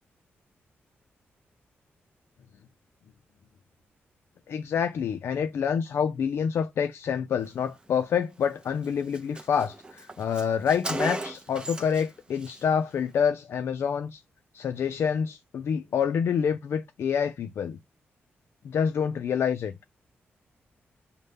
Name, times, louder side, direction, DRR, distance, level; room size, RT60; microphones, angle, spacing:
voice 1, 4.5-14.2 14.5-17.8 18.6-19.7, left 7 dB, 70° left, 0.3 m, -27 dB
Car, 8.4-8.6 8.8-8.9 9.1-12.1 12.4-12.6, right 2 dB, 20° right, 0.5 m, -36 dB
5.4 x 2.1 x 3.3 m
cardioid pair, 105°, 4 cm